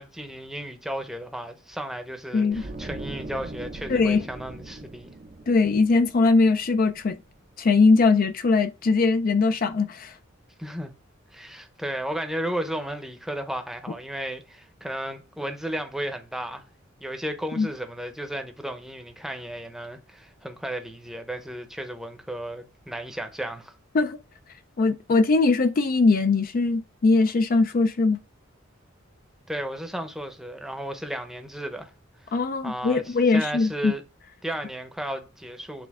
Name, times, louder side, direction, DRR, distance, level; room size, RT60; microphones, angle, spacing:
voice 1, 0.0-5.1 10.6-10.9 11.3-16.6 17.0-23.7 29.5-31.9 32.2-32.4 32.6-34.0 34.4-35.9, right 1 dB, ahead, 0.7 m, -34 dB
voice 2, 2.3-2.6 3.9-4.2 5.5-7.2 7.6-10.1 17.6-17.7 23.9-24.2 24.8-28.2 32.3-33.9, left 3 dB, 45° left, 0.4 m, -21 dB
sound 1, 2.5-7.6 7.9-8.1, right 2 dB, 35° right, 0.5 m, -40 dB
8.4 x 3.4 x 3.6 m
head